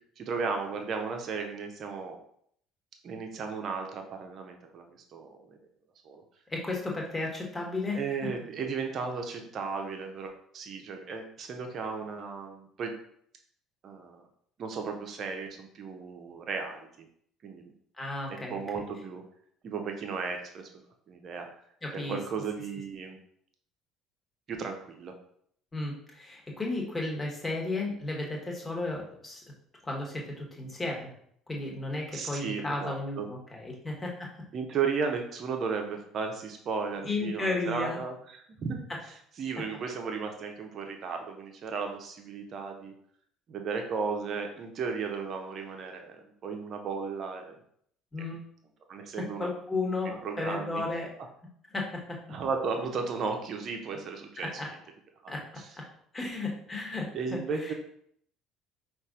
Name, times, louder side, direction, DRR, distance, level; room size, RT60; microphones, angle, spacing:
voice 1, 0.2-2.2 3.0-4.9 5.1-5.6 6.0-6.2 7.9-13.0 13.8-14.2 14.6-17.1 17.4-17.7 18.3-19.2 19.6-20.7 21.1-21.5 21.9-23.2 24.5-25.1 32.1-33.3 34.5-38.8 39.4-42.9 43.5-47.6 48.9-49.5 50.2-50.8 52.3-54.6 55.2-55.4 57.1-57.7, right 5 dB, 45° right, 4 dB, 0.8 m, -35 dB
voice 2, 6.5-8.3 18.0-18.6 21.8-22.2 25.7-29.4 29.8-31.1 31.5-34.3 37.0-38.0 48.1-48.4 49.2-51.1 51.7-52.2 54.4-54.7 55.3-55.4 55.8-55.9 56.1-57.7, left 2 dB, 20° left, -1 dB, 1.4 m, -34 dB
5.4 x 2.6 x 3.7 m, 0.66 s
figure-of-eight pair, 55°, 0 cm